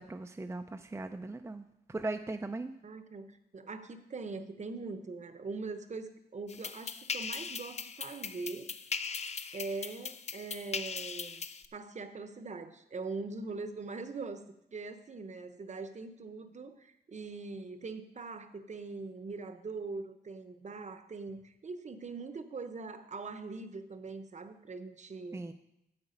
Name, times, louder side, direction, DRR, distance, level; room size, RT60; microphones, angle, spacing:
voice 1, 0.0-2.7 25.3-25.5, right 2 dB, 15° right, 7 dB, 0.5 m, -39 dB
voice 2, 2.8-8.7 9.5-11.4 11.7-14.4 14.7-25.4, right 3 dB, 45° right, 10 dB, 0.9 m, -42 dB
sound 1, 6.5-11.7, left 5 dB, 40° left, 0.5 m, -39 dB
9.8 x 7.9 x 5.2 m, 0.82 s
wide cardioid pair, 95°, 17 cm